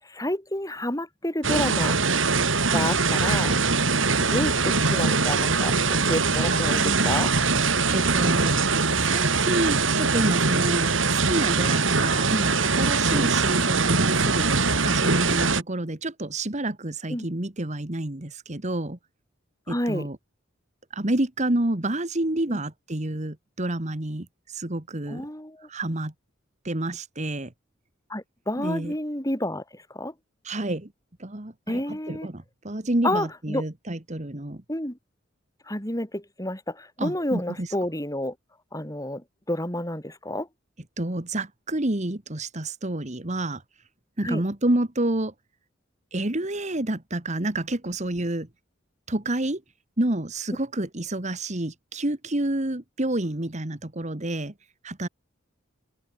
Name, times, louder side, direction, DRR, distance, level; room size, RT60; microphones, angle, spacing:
voice 1, 0.0-2.0 2.7-3.6 4.2-7.3 13.1-13.2 17.1-17.3 19.7-20.1 22.5-22.6 25.1-25.7 28.1-30.1 31.7-32.3 33.0-33.6 34.7-35.0 35.7-38.3 38.7-40.5 44.2-44.4, left 1 dB, 20° left, 7.3 m, -30 dB
sound 1, 1.4-15.6, right 4 dB, 80° right, 4.8 m, -22 dB
voice 2, 6.5-7.1 7.5-8.6 9.0-19.0 19.7-20.2 20.9-25.2 25.7-26.1 26.6-27.5 28.6-28.9 30.4-30.9 31.2-34.6 37.0-37.7 41.0-43.6 44.2-45.3 46.1-48.5 49.1-49.6 50.0-54.5 54.8-55.1, right 1 dB, 35° right, 1.8 m, -29 dB
open air
head